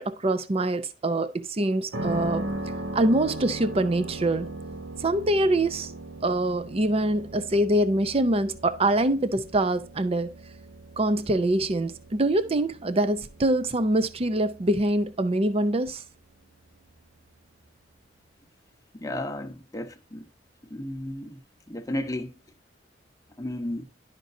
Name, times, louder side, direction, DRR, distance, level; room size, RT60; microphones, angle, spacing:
voice 1, 0.0-2.5 2.9-4.5 5.0-5.9 6.2-10.3 11.0-16.0, right 1 dB, 35° right, 0.5 m, -24 dB
sound 1, 1.9-17.8, right 2 dB, 85° right, 1.3 m, -39 dB
voice 2, 18.9-20.3 20.7-21.4 21.7-22.3 23.4-23.8, left 1 dB, 20° left, 0.9 m, -33 dB
11.5 x 5.2 x 2.6 m
head